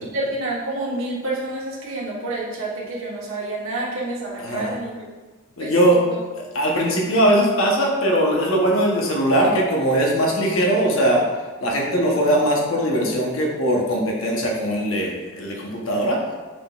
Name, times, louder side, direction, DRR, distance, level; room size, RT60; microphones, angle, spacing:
voice 1, 0.0-4.9 5.6-6.1, right 2 dB, 85° right, -6 dB, 1.2 m, -28 dB
voice 2, 4.4-4.8 5.6-6.0 6.5-11.2 11.6-16.2, right 1 dB, 90° left, -1 dB, 0.9 m, -20 dB
6.0 x 3.7 x 2.4 m, 1.3 s
head